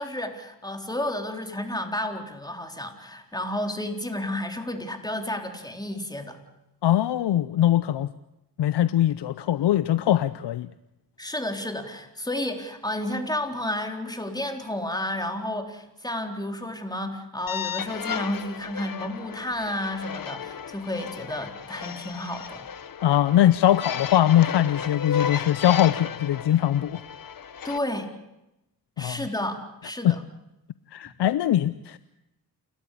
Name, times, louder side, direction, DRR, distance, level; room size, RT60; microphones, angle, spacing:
voice 1, 0.0-6.4 11.2-22.6 27.6-28.1 29.0-30.2, left 1 dB, 10° left, 5 dB, 3.9 m, -31 dB
voice 2, 6.8-8.1 8.6-10.7 23.0-27.0 29.0-29.2 30.0-30.2 30.9-32.0, left 12 dB, 75° left, 15 dB, 0.7 m, -21 dB
sound 1, 17.5-27.8, left 7 dB, 55° left, 1.1 m, -34 dB
29.0 x 13.0 x 8.5 m, 0.92 s
cardioid pair, 55°, 42 cm